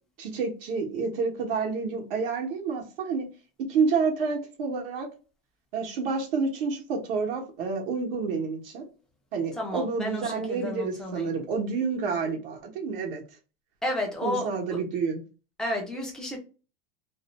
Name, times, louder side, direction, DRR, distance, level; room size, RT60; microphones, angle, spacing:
voice 1, 0.2-3.3 3.6-5.1 5.7-8.8 9.3-13.2 14.2-15.2, right 5 dB, 75° right, 0.9 m, -29 dB
voice 2, 9.6-11.3 13.8-14.6 15.6-16.4, left 1 dB, ahead, 0.3 m, -32 dB
2.5 x 2.1 x 2.9 m
supercardioid pair, 160°, 29 cm